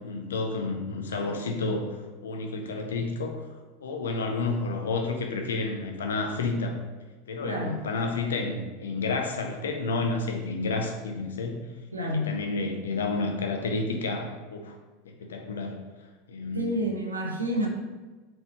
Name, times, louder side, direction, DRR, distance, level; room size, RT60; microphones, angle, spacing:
voice 1, 0.0-3.4 3.8-6.8 7.3-11.6 12.0-14.8 15.0-15.8 16.3-16.8, left 3 dB, 70° left, 3 dB, 0.5 m, -30 dB
voice 2, 7.4-7.8 11.9-12.3 16.5-17.7, equal, 85° right, 0 dB, 0.7 m, -29 dB
4.4 x 3.3 x 2.8 m, 1.2 s
figure-of-eight pair, 80°, 0 cm